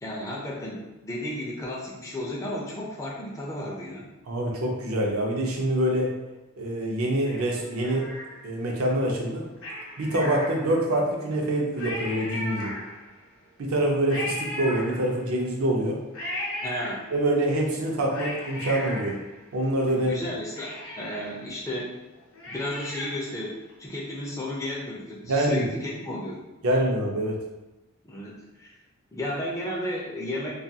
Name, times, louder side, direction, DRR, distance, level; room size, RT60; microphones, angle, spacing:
voice 1, 0.0-4.1 16.6-17.0 19.9-21.9 22.5-26.4 28.0-28.7 29.1-30.5, left 1 dB, 15° left, -3 dB, 0.4 m, -33 dB
voice 2, 4.3-6.1 6.6-8.1 8.4-9.5 10.0-12.8 13.6-16.0 17.1-19.2 19.5-20.1 25.3-25.6 26.6-27.4, right 1 dB, 70° right, 0 dB, 0.5 m, -25 dB
Cat, 7.2-8.7 9.6-11.0 11.4-11.5 11.7-13.2 14.1-15.4 16.1-17.4 17.9-19.9 20.2-20.3 20.6-23.3 23.7-23.8, left 1 dB, 60° left, 0.6 m, -36 dB
2.3 x 2.2 x 2.7 m, 1.0 s
head